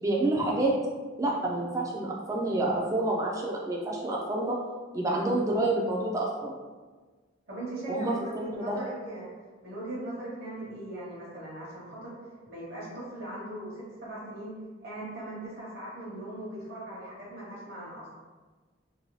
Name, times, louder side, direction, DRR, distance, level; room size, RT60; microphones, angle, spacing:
voice 1, 0.0-0.7 1.2-4.6 4.9-6.6 7.9-8.8, right 2 dB, 15° right, -3 dB, 0.3 m, -28 dB
voice 2, 7.5-9.3 9.6-12.2 12.5-14.5 14.8-18.1, right 1 dB, 55° right, -6 dB, 1.0 m, -39 dB
2.7 x 2.2 x 3.0 m, 1.3 s
head